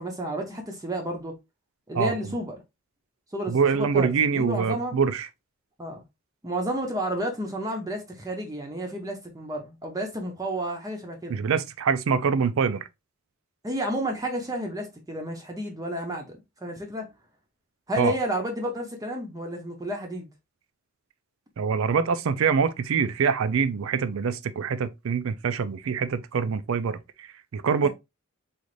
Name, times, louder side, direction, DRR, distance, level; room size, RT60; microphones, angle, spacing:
voice 1, 0.0-1.3 1.9-2.6 3.3-5.0 5.8-6.0 6.4-11.4 13.6-17.1 17.9-20.3 27.8-27.9, right 1 dB, 15° right, 0.6 m, -31 dB
voice 2, 1.9-2.4 3.5-5.3 11.3-12.8 18.0-18.1 21.6-27.9, right 6 dB, 65° right, 0.4 m, -25 dB
3.8 x 2.5 x 3.1 m
head